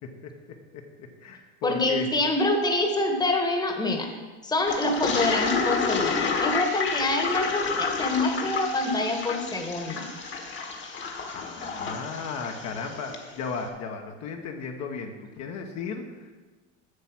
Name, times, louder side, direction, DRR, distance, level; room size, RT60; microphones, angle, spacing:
voice 1, 0.0-2.1 11.3-16.2, left 5 dB, 50° left, 3 dB, 1.2 m, -35 dB
voice 2, 1.6-4.1 4.4-10.1, left 2 dB, 10° left, 3 dB, 1.3 m, -26 dB
Toilet flush, 4.7-13.3, left 5 dB, 35° left, 1.4 m, -30 dB
8.1 x 6.9 x 6.0 m, 1.3 s
supercardioid pair, 110°, 35 cm